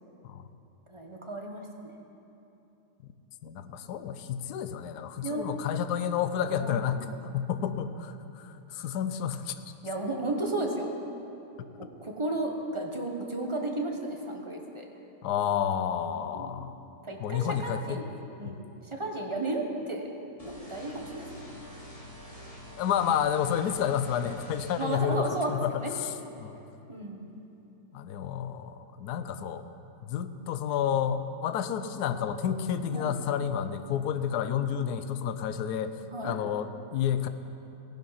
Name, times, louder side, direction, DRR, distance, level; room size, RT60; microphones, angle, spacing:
voice 1, 0.9-1.9 5.2-5.4 6.5-6.9 9.8-10.9 11.8-14.8 16.2-16.5 17.1-18.1 18.4-20.0 20.4-21.4 24.8-25.9 26.9-27.3 32.9-33.1 36.1-36.3, right 2 dB, 20° right, 1 dB, 1.0 m, -33 dB
voice 2, 3.4-9.7 15.2-16.8 17.2-18.0 18.4-18.5 22.8-26.1 26.4-26.6 27.9-29.7 30.0-37.3, left 8 dB, 70° left, 10 dB, 1.1 m, -30 dB
sound 1, 20.4-24.8, equal, 20° left, 2.2 m, -46 dB
15.5 x 10.5 x 5.8 m, 2.9 s
omnidirectional pair, 1.9 m